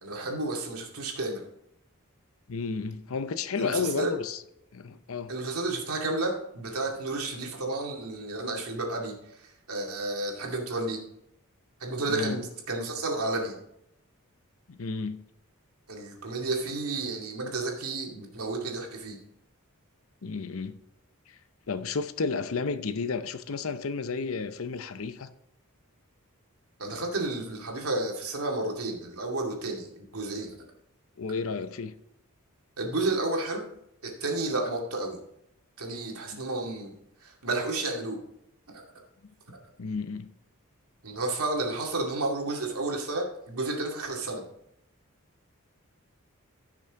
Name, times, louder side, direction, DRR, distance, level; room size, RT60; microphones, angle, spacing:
voice 1, 0.0-1.4 3.6-4.1 5.3-11.0 11.8-13.6 15.9-19.2 26.8-30.6 32.8-33.6 34.0-35.2 35.8-36.9 37.2-38.2 38.7-38.8 41.0-44.4, right 2 dB, 80° right, 2.3 m, -31 dB
voice 2, 2.5-4.4 4.7-5.3 12.1-12.4 14.7-15.2 20.2-20.8 21.7-25.3 31.2-31.9 36.2-36.4 39.8-40.3, left 4 dB, 65° left, 0.6 m, -32 dB
15.0 x 6.1 x 3.7 m
head